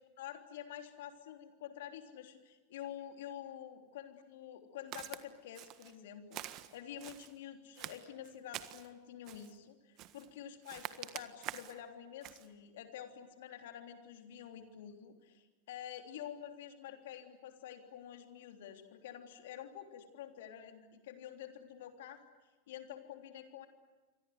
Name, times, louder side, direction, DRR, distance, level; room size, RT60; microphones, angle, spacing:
voice 1, 0.2-22.2 22.7-23.7, left 10 dB, 70° left, 5 dB, 3.4 m, -48 dB
Walk footsteps, 4.9-5.2 5.5-5.9 6.3-7.3 7.7-8.9 9.2-9.6 10.0-10.3 10.6-11.8 12.2-12.5, right 14 dB, 45° right, 1.6 m, -46 dB
28.5 x 24.0 x 8.0 m, 1.2 s
hypercardioid pair, 90°, 0 cm